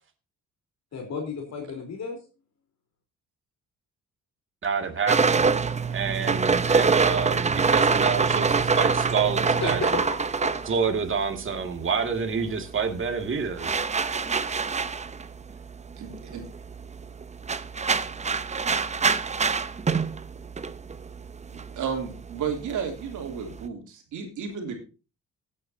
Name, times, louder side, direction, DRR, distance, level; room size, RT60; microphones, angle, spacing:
voice 1, 0.9-2.2 9.6-10.6, left 5 dB, 60° left, 2 dB, 3.9 m, -33 dB
voice 2, 4.6-5.5 5.9-9.9 10.7-13.8, right 6 dB, 40° right, 5 dB, 2.2 m, -28 dB
sound 1, 5.1-11.8 12.0-23.7, right 5 dB, 25° right, 0.7 m, -25 dB
voice 3, 16.0-16.4 21.8-24.8, right 6 dB, 75° right, 3 dB, 3.1 m, -32 dB
17.0 x 8.7 x 2.8 m, 0.32 s
cardioid pair, 90°, 30 cm